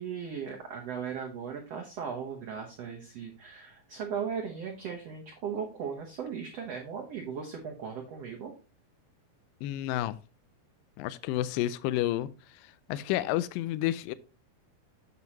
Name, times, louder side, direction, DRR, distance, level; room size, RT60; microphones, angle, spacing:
voice 1, 0.0-8.5, right 7 dB, 75° right, 1.5 m, -37 dB
voice 2, 9.6-10.2 11.0-12.3 12.9-14.1, left 14 dB, 85° left, 2.0 m, -30 dB
8.3 x 7.1 x 3.0 m
omnidirectional pair, 4.4 m